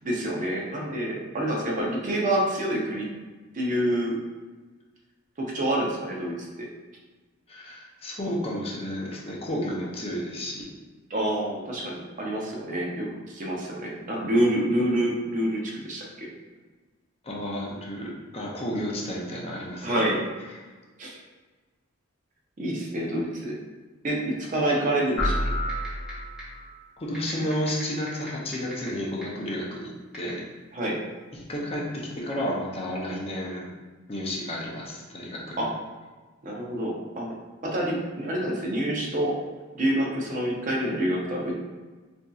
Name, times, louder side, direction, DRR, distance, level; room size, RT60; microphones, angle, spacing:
voice 1, 0.0-3.1 3.5-4.2 5.4-6.3 11.1-16.3 19.8-20.2 21.0-21.2 22.6-23.5 24.0-25.4 30.7-31.0 35.6-35.7 36.4-37.3 37.6-39.3 39.7-41.6, right 1 dB, 40° right, -2 dB, 0.6 m, -27 dB
voice 2, 7.5-10.6 17.2-20.0 27.0-30.4 31.3-33.7 34.1-35.7, equal, 30° left, -3 dB, 0.5 m, -32 dB
sound 1, 25.2-26.7, left 1 dB, 70° left, 0.6 m, -28 dB
sound 2, 25.2-25.3 25.7-26.1 26.4-26.5 27.1-28.9 29.2-29.3 30.1-30.3, right 3 dB, 5° right, 1.0 m, -40 dB
4.1 x 2.6 x 2.3 m, 1.3 s
head